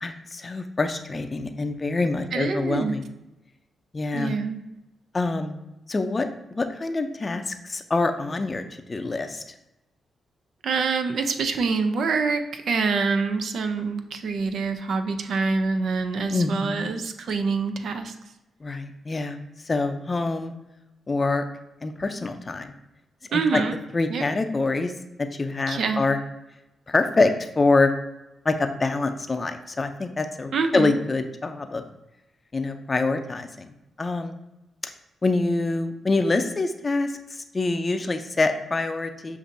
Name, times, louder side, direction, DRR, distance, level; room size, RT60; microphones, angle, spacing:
voice 1, 0.0-3.1 3.9-4.4 5.1-5.6 5.9-8.6 8.9-9.4 16.3-16.9 18.6-19.4 19.7-20.5 21.1-21.4 21.8-22.7 23.3-23.6 23.9-24.9 25.2-26.2 26.9-27.9 28.4-31.8 32.5-33.7 34.0-34.4 34.8-34.9 35.2-39.4, left 3 dB, 35° left, 7 dB, 0.5 m, -25 dB
voice 2, 2.3-3.0 4.1-4.6 10.6-18.2 23.3-23.8 24.1-24.2 25.7-26.0 30.5-31.0, right 4 dB, 70° right, 8 dB, 0.4 m, -26 dB
6.8 x 2.6 x 2.6 m, 0.96 s
cardioid pair, 75°, 0 cm